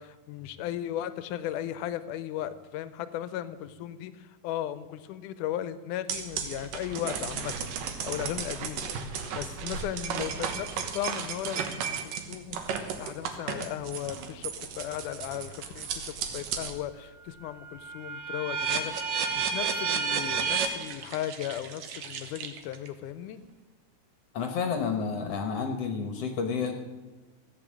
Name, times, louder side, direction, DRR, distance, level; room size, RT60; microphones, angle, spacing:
voice 1, 0.0-8.9 9.4-18.9 19.3-23.4, left 11 dB, 80° left, 13 dB, 2.2 m, -36 dB
sound 1, 6.1-16.8 17.2-22.9, right 6 dB, 85° right, 2.8 m, -33 dB
voice 2, 24.3-26.8, left 5 dB, 60° left, 5 dB, 1.8 m, -30 dB
15.5 x 8.8 x 7.4 m, 1.3 s
omnidirectional pair, 3.8 m